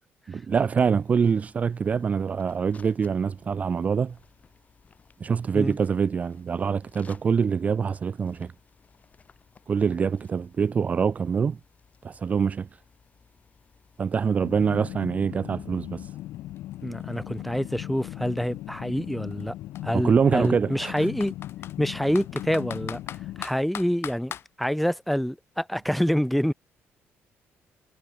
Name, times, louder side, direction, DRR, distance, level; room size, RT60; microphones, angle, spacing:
voice 1, 0.3-4.2 5.2-8.5 9.7-11.6 12.0-12.7 14.0-16.1 19.9-20.9, right 6 dB, 30° right, 0.3 m, -25 dB
sound 1, 0.9-14.8, left 5 dB, 30° left, 6.4 m, -58 dB
sound 2, 14.4-23.4, left 15 dB, 80° left, 0.9 m, -38 dB
Computer keyboard, 16.2-16.3 16.6-18.5 19.3-19.4 19.8-19.9 20.4-21.8 22.2-24.5, left 9 dB, 55° left, 2.2 m, -39 dB
voice 2, 16.8-19.5 19.8-21.3 21.8-23.0 23.4-24.3 24.6-26.5, equal, ahead, 0.8 m, -26 dB
cardioid pair, 130°, 5 cm